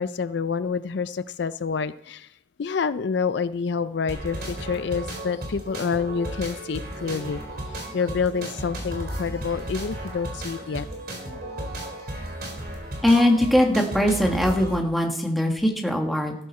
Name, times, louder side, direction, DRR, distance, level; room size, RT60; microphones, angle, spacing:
voice 1, 0.0-2.3 2.6-7.4 7.9-10.9, left 5 dB, 65° left, 14 dB, 0.4 m, -27 dB
sound 1, 4.1-14.8, right 1 dB, 50° right, 4.0 m, -34 dB
voice 2, 13.0-16.3, left 1 dB, ahead, 1 dB, 1.6 m, -21 dB
14.5 x 12.5 x 4.2 m, 0.72 s
head